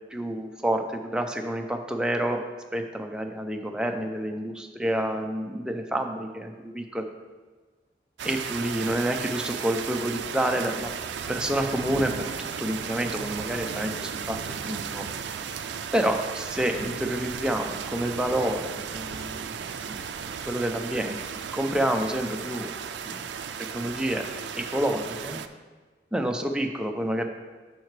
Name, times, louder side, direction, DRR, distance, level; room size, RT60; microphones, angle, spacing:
voice 1, 0.1-2.4 2.7-7.1 8.2-10.9 11.3-15.1 15.9-19.6 19.9-20.0 20.5-22.7 23.0-23.2 23.7-24.2 24.5-25.4 26.1-27.2, right 1 dB, 5° right, 3 dB, 0.5 m, -28 dB
sound 1, 8.2-25.5, right 7 dB, 85° right, 0.4 m, -35 dB
8.9 x 5.8 x 3.2 m, 1.4 s
head